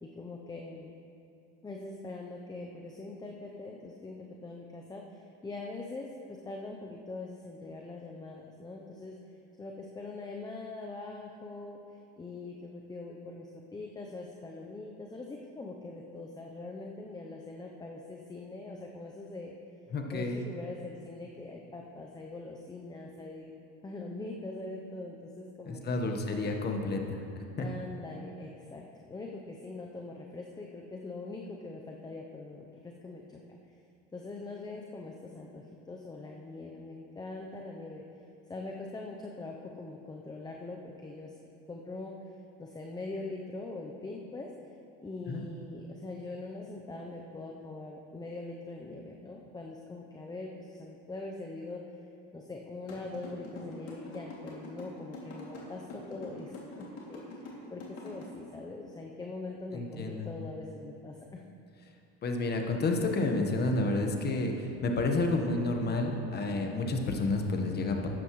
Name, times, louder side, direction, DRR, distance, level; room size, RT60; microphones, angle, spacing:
voice 1, 0.0-0.9 1.6-9.2 9.6-11.8 12.2-19.5 20.1-23.6 23.8-26.2 27.6-33.6 34.1-38.0 38.5-41.4 41.7-42.1 42.6-44.5 45.0-51.8 52.3-61.4, left 2 dB, 10° left, 0 dB, 0.7 m, -42 dB
voice 2, 19.9-20.4 25.6-27.2 27.6-27.7 45.3-45.4 59.7-60.3 62.2-68.1, left 2 dB, 30° left, 3 dB, 1.3 m, -30 dB
sound 1, 52.9-58.2, left 3 dB, 50° left, 2.6 m, -44 dB
13.0 x 9.5 x 3.2 m, 2.6 s
supercardioid pair, 110°, 33 cm